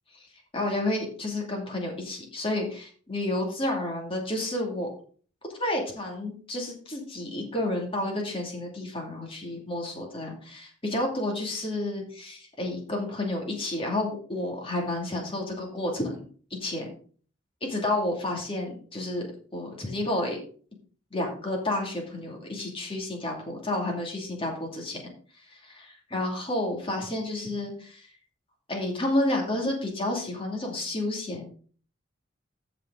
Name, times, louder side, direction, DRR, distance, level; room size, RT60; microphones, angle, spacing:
voice 1, 0.5-4.9 5.6-16.2 16.6-16.9 17.6-19.3 19.5-20.4 21.1-25.0 25.5-28.1 28.7-31.5, left 1 dB, 25° left, 0 dB, 2.4 m, -30 dB
14.5 x 5.1 x 3.8 m, 0.43 s
head